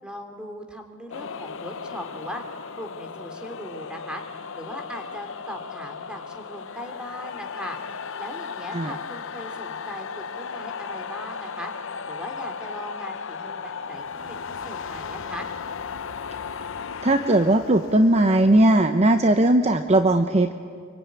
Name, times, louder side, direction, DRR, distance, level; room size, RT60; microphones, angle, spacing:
voice 1, 0.0-2.4 2.8-4.2 4.6-7.8 8.2-11.7 12.1-15.5, equal, 5° right, 4 dB, 3.1 m, -39 dB
sound 1, 1.1-19.6, left 5 dB, 65° left, 0.7 m, -36 dB
voice 2, 17.0-20.6, right 1 dB, 30° right, 8 dB, 0.8 m, -18 dB
26.0 x 24.0 x 9.6 m, 2.2 s
head